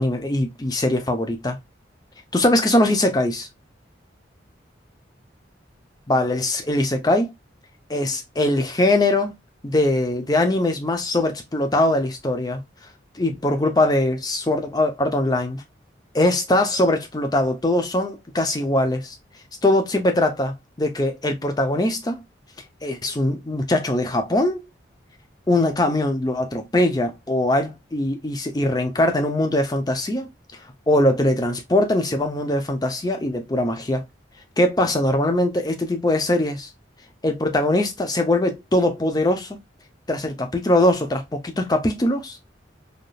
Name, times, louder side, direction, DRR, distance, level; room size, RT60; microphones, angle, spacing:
voice 1, 0.0-1.6 2.3-3.5 6.1-7.3 7.9-9.3 9.6-12.6 13.2-15.6 16.1-19.1 19.6-22.2 22.8-24.6 25.5-30.3 30.9-34.0 34.6-36.7 37.2-39.6 40.1-42.4, left 1 dB, 20° left, 0.5 m, -21 dB
3.4 x 2.6 x 2.3 m
head